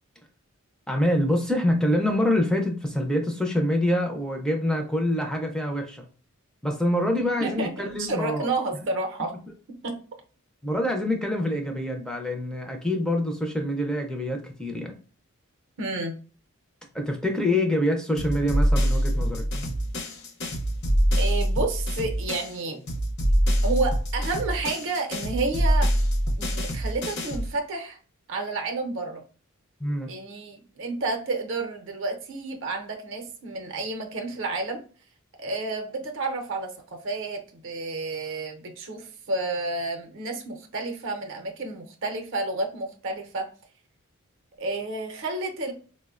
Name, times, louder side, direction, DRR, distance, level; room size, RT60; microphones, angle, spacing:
voice 1, 0.9-6.1 6.6-8.5 10.6-14.9 16.9-19.8 29.8-30.1, left 1 dB, 5° left, 3 dB, 0.3 m, -26 dB
voice 2, 7.2-9.4 9.8-10.0 15.8-16.1 21.2-22.8 23.6-25.9 26.4-28.0 28.3-29.2 30.1-34.8 35.4-43.5 44.6-45.7, right 3 dB, 55° right, 4 dB, 0.5 m, -30 dB
sound 1, 18.2-22.6 22.9-27.5, equal, 50° left, 0.6 m, -25 dB
4.2 x 2.1 x 2.3 m, 0.40 s
head